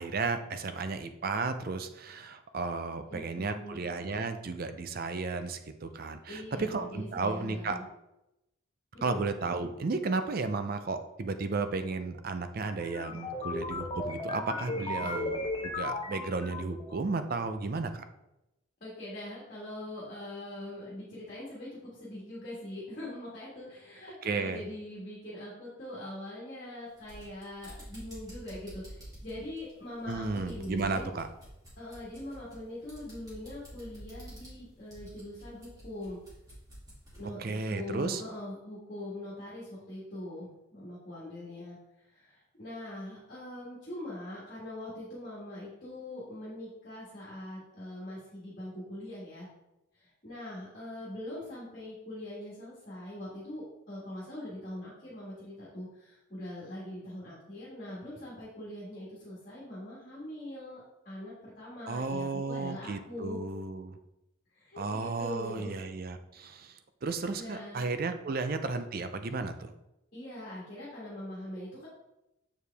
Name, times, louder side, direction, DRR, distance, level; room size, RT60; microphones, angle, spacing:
voice 1, 0.0-7.8 9.0-18.0 24.2-24.6 30.1-31.3 37.4-38.2 61.9-64.0 64.8-69.7, right 3 dB, 45° right, 9 dB, 0.5 m, -34 dB
voice 2, 3.1-3.8 6.3-7.8 8.9-9.2 15.0-15.2 18.8-31.1 31.8-36.2 37.2-41.8 42.1-49.5 49.9-63.4 64.5-65.7 67.4-67.8 70.1-71.9, left 1 dB, 40° left, -6 dB, 1.7 m, -42 dB
sound 1, 12.8-16.9, left 2 dB, 25° left, 0.7 m, -36 dB
sound 2, 26.9-37.3, equal, 20° right, 2.4 m, -49 dB
6.9 x 4.7 x 3.4 m, 0.91 s
head